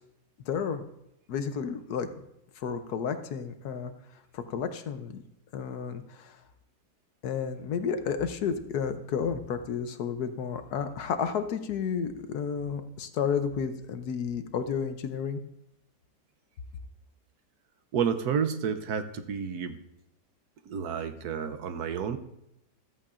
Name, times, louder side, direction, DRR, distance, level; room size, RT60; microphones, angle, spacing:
voice 1, 0.5-0.8 1.3-2.1 2.6-3.9 4.3-5.2 5.5-6.4 7.2-15.4, left 7 dB, 65° left, 9 dB, 1.2 m, -31 dB
voice 2, 17.9-19.8 20.7-22.2, right 7 dB, 70° right, 9 dB, 1.2 m, -30 dB
14.0 x 13.5 x 2.5 m, 0.82 s
omnidirectional pair, 1.9 m